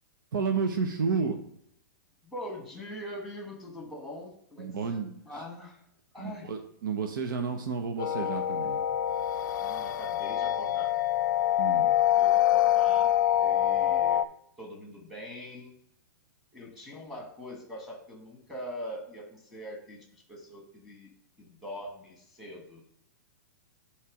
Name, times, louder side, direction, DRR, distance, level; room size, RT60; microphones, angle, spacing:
voice 1, 0.3-1.4 4.6-5.4 6.2-8.8 11.6-11.9, right 5 dB, 75° right, 4 dB, 0.9 m, -31 dB
voice 2, 2.2-5.8 6.1-6.5 9.6-11.0 12.0-13.1 13.4-14.2 14.6-15.7 16.5-21.1 21.4-22.8, equal, ahead, 1 dB, 1.5 m, -43 dB
sound 1, 8.0-14.3, left 12 dB, 65° left, 0.4 m, -25 dB
8.7 x 3.3 x 4.9 m, 0.70 s
hypercardioid pair, 165°, 11 cm